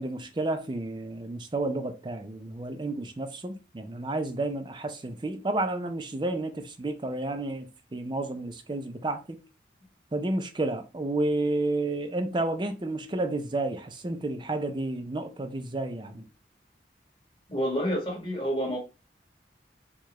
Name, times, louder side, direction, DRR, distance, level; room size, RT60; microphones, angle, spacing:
voice 1, 0.0-9.4 10.1-16.3, right 2 dB, 25° right, 0.4 m, -31 dB
voice 2, 17.5-18.8, equal, 30° left, 1.5 m, -28 dB
4.6 x 2.3 x 3.0 m
head